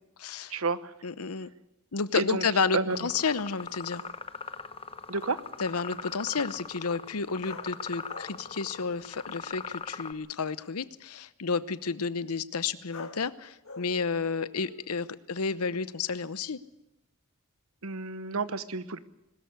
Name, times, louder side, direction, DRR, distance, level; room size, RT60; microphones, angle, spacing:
voice 1, 0.2-0.5 1.0-1.5 1.9-4.0 5.6-16.6, left 5 dB, 90° left, 16 dB, 0.9 m, -31 dB
voice 2, 2.1-2.4 2.7-3.0 5.1-5.4 17.8-19.0, right 3 dB, 70° right, 14 dB, 1.0 m, -30 dB
sound 1, 2.9-10.1, left 5 dB, 25° left, 0.9 m, -41 dB
sound 2, 3.6-4.8 7.4-9.3 9.6-10.2 12.9-13.3 13.6-15.9 16.3-16.7, left 3 dB, 65° left, 2.2 m, -50 dB
21.5 x 13.5 x 9.5 m, 0.93 s
head